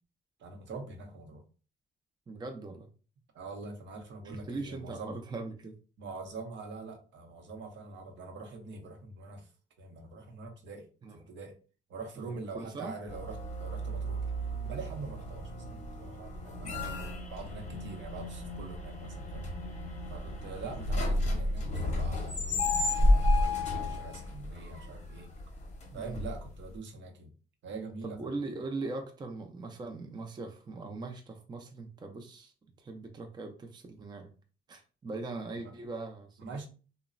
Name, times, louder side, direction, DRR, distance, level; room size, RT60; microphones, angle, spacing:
voice 1, 0.4-1.4 3.3-5.2 6.0-9.5 9.8-11.5 11.9-14.2 14.6-16.9 17.3-19.5 20.1-25.3 25.9-27.3 27.6-28.2 35.6-35.7 36.4-36.7, right 3 dB, 65° right, 3 dB, 0.7 m, -44 dB
voice 2, 2.3-2.9 4.2-5.7 11.0-11.2 12.2-12.9 16.6-16.9 25.9-26.2 28.0-32.5 32.8-34.3 34.7-36.4, right 3 dB, 20° right, 4 dB, 0.5 m, -40 dB
sound 1, 13.1-26.7, left 1 dB, 35° left, 0.7 m, -32 dB
3.0 x 2.0 x 2.4 m, 0.36 s
cardioid pair, 90°, 20 cm